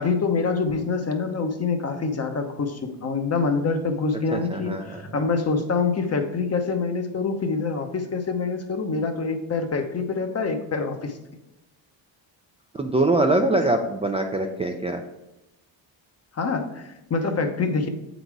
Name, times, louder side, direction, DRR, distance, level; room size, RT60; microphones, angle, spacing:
voice 1, 0.0-11.2 16.3-17.9, left 4 dB, 35° left, 6 dB, 0.9 m, -26 dB
voice 2, 4.3-5.0 12.7-15.0, right 2 dB, 15° right, 2 dB, 0.4 m, -23 dB
7.7 x 4.1 x 4.7 m, 0.95 s
cardioid pair, 105°, 46 cm